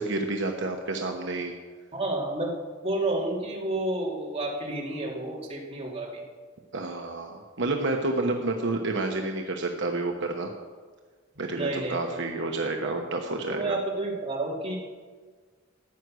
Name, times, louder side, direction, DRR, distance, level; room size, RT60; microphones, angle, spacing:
voice 1, 0.0-1.5 6.7-10.5 11.4-13.8, right 2 dB, 65° right, 3 dB, 1.0 m, -29 dB
voice 2, 1.9-2.5 2.8-6.2 11.3-12.2 12.8-13.0 13.5-14.8, right 2 dB, 30° right, -3 dB, 2.8 m, -30 dB
14.5 x 9.5 x 6.2 m, 1.5 s
head